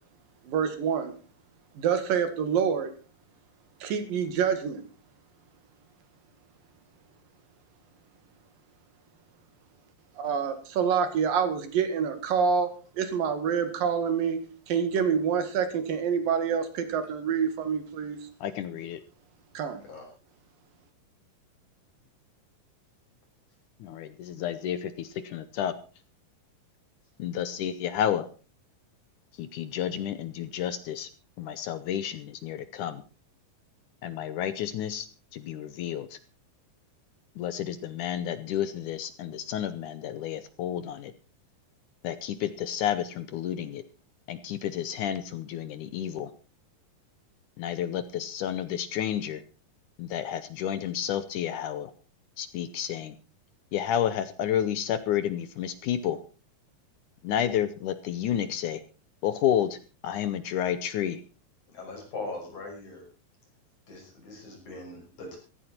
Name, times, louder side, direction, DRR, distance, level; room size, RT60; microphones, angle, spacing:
voice 1, 0.5-1.1 1.8-2.9 3.8-4.8 10.2-14.4 14.7-18.3 19.6-19.8, right 7 dB, 70° right, 9 dB, 3.6 m, -27 dB
voice 2, 18.4-19.0 23.8-25.8 27.2-28.3 29.4-31.1 31.4-33.0 34.0-35.1 35.3-36.2 37.4-41.1 42.0-43.8 44.3-46.3 47.6-49.4 50.0-51.9 52.4-53.2 53.7-56.2 57.2-58.8 59.2-59.8 60.0-61.2, left 10 dB, 70° left, 13 dB, 2.1 m, -30 dB
voice 3, 61.7-63.0 63.9-65.4, left 2 dB, 55° left, 1 dB, 7.6 m, -40 dB
16.0 x 14.5 x 4.4 m, 0.35 s
omnidirectional pair, 4.2 m